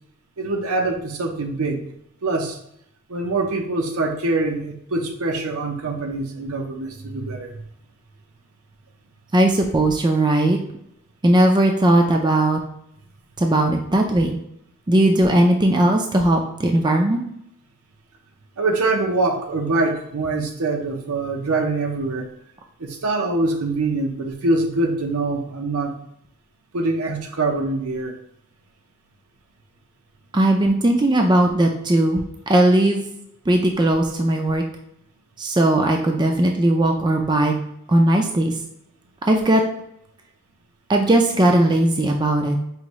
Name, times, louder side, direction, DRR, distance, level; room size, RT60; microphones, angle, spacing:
voice 1, 0.4-1.8 2.2-2.6 3.1-7.6 18.6-22.3 22.8-25.9 26.7-28.2, right 2 dB, 80° right, 3 dB, 0.7 m, -24 dB
voice 2, 9.3-10.6 11.2-12.6 13.4-14.4 14.9-17.2 30.3-33.0 33.5-34.6 35.4-37.5 37.9-38.5 39.2-39.6 40.9-42.6, right 1 dB, 20° right, 2 dB, 0.4 m, -18 dB
4.9 x 2.6 x 3.1 m, 0.75 s
head